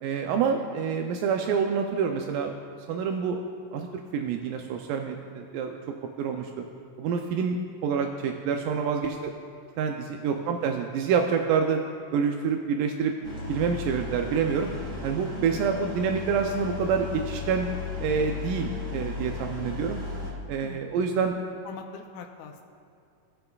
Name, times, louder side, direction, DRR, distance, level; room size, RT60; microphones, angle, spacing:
voice 1, 0.0-2.5 2.9-3.4 3.7-5.8 6.2-6.5 7.0-7.6 7.8-9.3 9.8-11.8 12.1-13.1 13.5-14.7 15.0-17.7 18.0-20.0 20.5-21.4, right 6 dB, 85° right, 4 dB, 2.2 m, -27 dB
sound 1, 13.2-20.3, left 4 dB, 30° right, 1.5 m, -35 dB
voice 2, 20.6-21.0 21.6-22.6, left 7 dB, 80° left, 3 dB, 1.6 m, -44 dB
18.5 x 6.7 x 2.3 m, 2.6 s
omnidirectional pair, 3.8 m